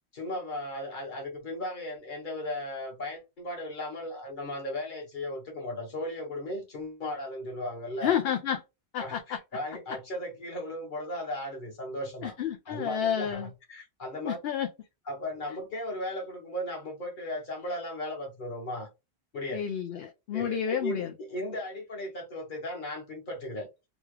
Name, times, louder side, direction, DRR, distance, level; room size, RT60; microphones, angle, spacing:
voice 1, 0.1-8.2 9.0-12.3 12.7-14.4 15.1-18.9 19.3-19.6 20.3-23.7, left 1 dB, 50° left, 1.4 m, -36 dB
voice 2, 8.0-8.6 8.9-9.4 12.2-13.5 14.3-14.7 19.5-21.1, left 9 dB, 70° left, 0.8 m, -30 dB
3.1 x 2.3 x 3.2 m
omnidirectional pair, 1.1 m